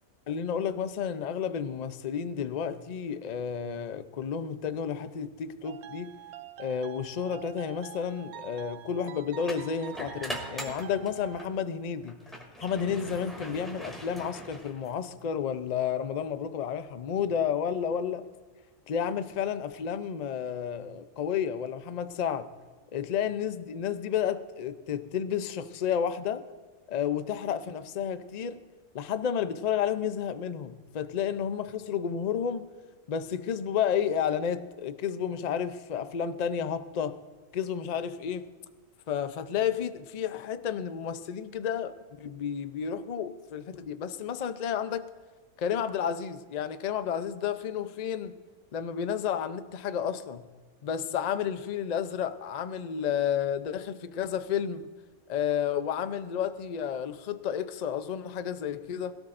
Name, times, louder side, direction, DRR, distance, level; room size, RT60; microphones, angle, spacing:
voice 1, 0.3-6.1 6.6-12.2 12.6-18.3 18.9-22.5 22.9-26.5 26.9-28.6 28.9-32.7 33.1-37.2 37.5-38.5 39.1-45.1 45.6-48.4 48.7-50.5 50.8-54.9 55.3-59.2, left 8 dB, 55° left, 0.4 m, -31 dB
sound 1, 5.6-11.5, right 12 dB, 65° right, 0.7 m, -46 dB
sound 2, 9.4-11.6 12.0-15.2, equal, ahead, 2.4 m, -41 dB
21.5 x 17.0 x 2.6 m
omnidirectional pair, 1.5 m